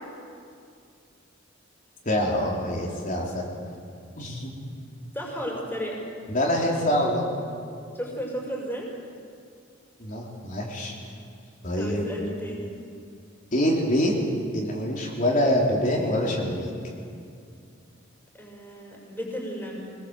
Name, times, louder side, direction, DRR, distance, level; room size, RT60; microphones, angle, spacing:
voice 1, 2.0-3.5 4.2-4.5 6.3-7.3 10.0-10.9 11.6-12.1 13.5-14.1 14.5-16.7, equal, 40° left, -2 dB, 3.8 m, -25 dB
voice 2, 5.1-6.0 7.9-8.9 11.7-12.8 18.4-19.9, equal, 10° left, -2 dB, 5.7 m, -34 dB
25.0 x 21.0 x 7.8 m, 2.4 s
head